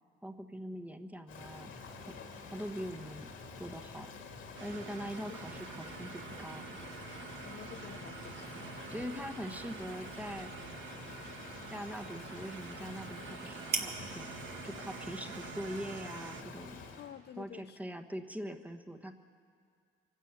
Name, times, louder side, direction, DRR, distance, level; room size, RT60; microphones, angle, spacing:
voice 1, 0.2-1.9 2.5-3.3 3.6-4.1 4.6-6.7 8.9-10.5 11.7-14.3 14.6-16.8 17.4-19.1, equal, 5° right, 6 dB, 1.2 m, -42 dB
Rain, 1.3-17.1, left 4 dB, 85° left, 2.6 m, -48 dB
sound 1, 4.6-16.4, right 7 dB, 75° right, 1.3 m, -48 dB
voice 2, 4.9-5.4 5.8-5.9 7.4-8.8 17.0-17.8, left 10 dB, 55° left, 12 dB, 0.5 m, -50 dB
sound 2, 9.4-17.1, right 4 dB, 55° right, 2.1 m, -46 dB
24.5 x 12.0 x 8.9 m, 2.2 s
cardioid pair, 90°, 20 cm